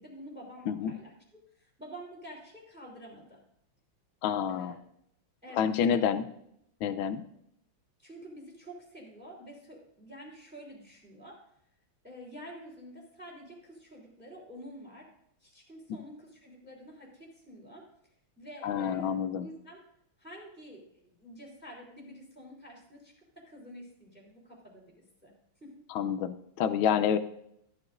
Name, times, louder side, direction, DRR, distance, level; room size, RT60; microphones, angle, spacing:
voice 1, 0.0-3.4 4.5-4.8 5.4-6.1 8.0-11.5 12.0-15.1 15.4-17.9 18.4-19.8 20.2-24.9 25.2-25.3 25.6-25.8, equal, 5° right, -2 dB, 3.1 m, -48 dB
voice 2, 4.2-4.7 5.6-6.3 6.8-7.2 18.6-19.5 25.9-27.2, left 8 dB, 75° left, 11 dB, 1.4 m, -28 dB
14.0 x 12.5 x 2.6 m, 0.75 s
omnidirectional pair, 2.3 m